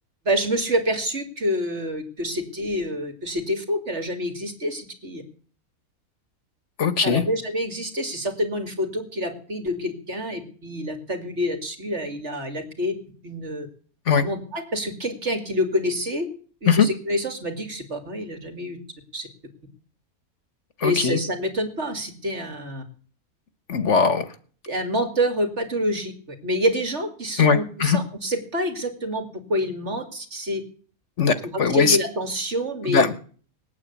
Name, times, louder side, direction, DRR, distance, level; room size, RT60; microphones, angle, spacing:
voice 1, 0.2-5.2 7.0-12.9 13.2-13.7 14.2-16.3 16.6-18.8 19.1-19.3 20.8-22.8 24.7-30.6 31.7-33.0, equal, 50° right, 5 dB, 2.7 m, -27 dB
voice 2, 6.8-7.2 14.1-14.3 16.7-16.9 20.8-21.2 23.7-24.2 27.4-28.0 31.2-32.0 32.8-33.2, left 6 dB, 55° left, 11 dB, 1.4 m, -20 dB
19.5 x 8.8 x 8.4 m, 0.44 s
omnidirectional pair, 1.5 m